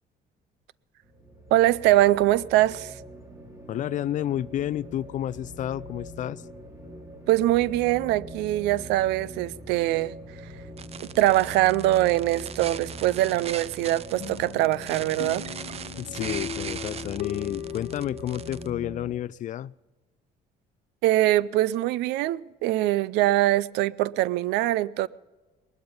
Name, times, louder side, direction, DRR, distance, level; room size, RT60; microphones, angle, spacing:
sound 1, 1.0-19.2, equal, 20° right, 3.0 m, -43 dB
voice 1, 1.5-2.9 7.3-10.2 11.2-15.5 21.0-25.1, right 15 dB, 90° right, 0.4 m, -23 dB
voice 2, 3.7-6.5 16.0-19.7, left 12 dB, 50° left, 0.4 m, -31 dB
sound 2, 10.8-18.7, right 8 dB, 35° right, 0.6 m, -39 dB
sound 3, 14.2-18.9, left 10 dB, 90° left, 1.2 m, -38 dB
20.0 x 12.0 x 5.4 m
cardioid pair, 110°, 17 cm